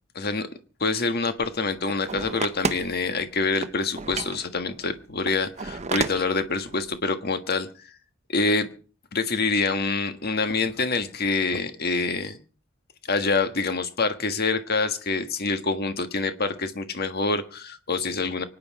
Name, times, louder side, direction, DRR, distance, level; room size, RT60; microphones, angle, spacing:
voice 1, 0.1-0.5 0.8-7.7 8.3-8.7 9.1-12.4 13.1-18.4, left 3 dB, 55° left, 9 dB, 1.6 m, -26 dB
sound 1, 1.4-3.3 3.5-7.0, right 4 dB, 35° right, 0.9 m, -32 dB
25.0 x 9.7 x 4.8 m, 0.38 s
head